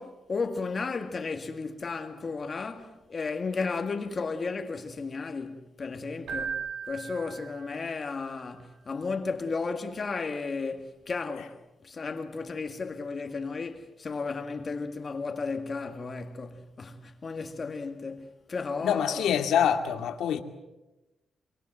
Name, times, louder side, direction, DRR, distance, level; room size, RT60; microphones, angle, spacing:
voice 1, 0.0-6.6 6.9-11.6 11.8-19.3, left 4 dB, 30° left, 1.9 m, -34 dB
Keyboard (musical), 6.3-8.1, right 6 dB, 85° right, 7.1 m, -37 dB
voice 2, 18.8-20.4, left 8 dB, 85° left, 2.3 m, -25 dB
26.5 x 24.0 x 7.8 m
wide cardioid pair, 170°, 0 cm